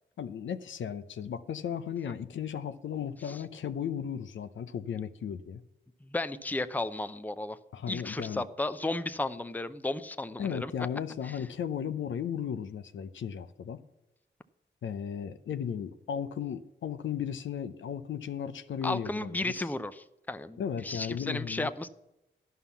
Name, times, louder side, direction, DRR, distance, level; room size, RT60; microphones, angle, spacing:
voice 1, 0.2-5.6 7.7-8.5 10.4-13.8 14.8-19.6 20.6-21.7, left 8 dB, 75° left, 11 dB, 0.7 m, -35 dB
voice 2, 6.0-7.6 7.9-10.7 11.2-11.4 18.8-21.9, left 2 dB, 10° left, 12 dB, 0.6 m, -34 dB
11.0 x 5.7 x 7.0 m, 0.93 s
cardioid pair, 60°, 20 cm